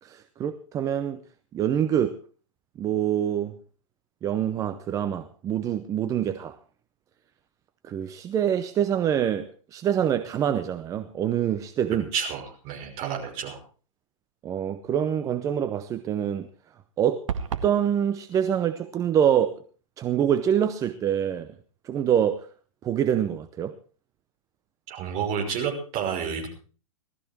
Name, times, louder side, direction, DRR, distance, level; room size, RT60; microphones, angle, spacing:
voice 1, 0.0-1.2 1.5-2.2 2.8-3.6 4.2-6.6 7.8-12.1 14.4-16.5 17.0-17.3 17.6-19.6 20.0-21.5 21.8-22.5 22.8-23.7, right 9 dB, 20° right, 0.6 m, -25 dB
voice 2, 12.1-13.6 24.9-26.5, right 7 dB, 35° right, 5.7 m, -30 dB
sound 1, 17.3-17.8, right 7 dB, 65° right, 1.9 m, -29 dB
19.0 x 13.5 x 4.5 m
hypercardioid pair, 140°, 18 cm